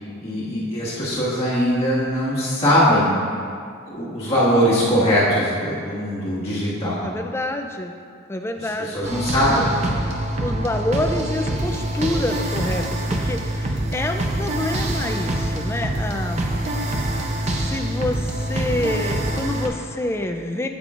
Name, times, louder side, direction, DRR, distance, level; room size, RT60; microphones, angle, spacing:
voice 1, 0.2-3.1 3.9-7.1 8.8-9.7, equal, 30° left, -9 dB, 1.7 m, -21 dB
voice 2, 7.0-7.9 8.3-9.0 10.4-16.5 17.4-20.7, left 1 dB, 10° left, 5 dB, 0.3 m, -27 dB
sound 1, 9.0-19.7, right 1 dB, 35° right, 0.6 m, -25 dB
8.6 x 8.4 x 2.5 m, 2.2 s
head